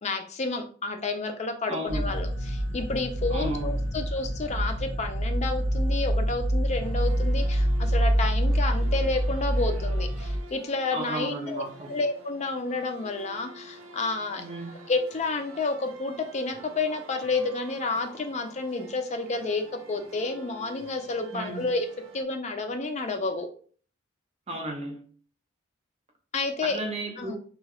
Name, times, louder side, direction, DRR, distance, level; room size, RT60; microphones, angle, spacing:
voice 1, 0.0-11.6 11.9-14.4 14.9-21.9 22.1-23.5 26.3-26.8 27.2-27.4, left 3 dB, 35° left, 0.4 m, -30 dB
voice 2, 1.7-2.1 3.3-3.8 10.9-11.9 14.4-14.7 21.3-21.7 24.5-25.1 26.6-27.4, right 1 dB, 30° right, 0.6 m, -34 dB
sound 1, 1.9-10.4, equal, 80° left, 0.9 m, -26 dB
sound 2, 6.8-22.2, right 2 dB, 90° right, 0.6 m, -49 dB
2.8 x 2.3 x 2.9 m
head